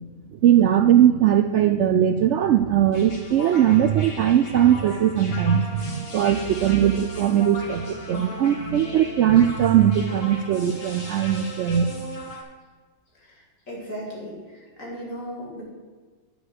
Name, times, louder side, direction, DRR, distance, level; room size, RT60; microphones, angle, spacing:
voice 1, 0.4-11.9, right 10 dB, 70° right, 8 dB, 0.7 m, -20 dB
sound 1, 2.9-12.4, left 1 dB, 40° left, 1.7 m, -38 dB
voice 2, 13.7-15.6, equal, 60° left, -3 dB, 3.4 m, -36 dB
10.5 x 4.9 x 8.1 m, 1.5 s
omnidirectional pair, 1.6 m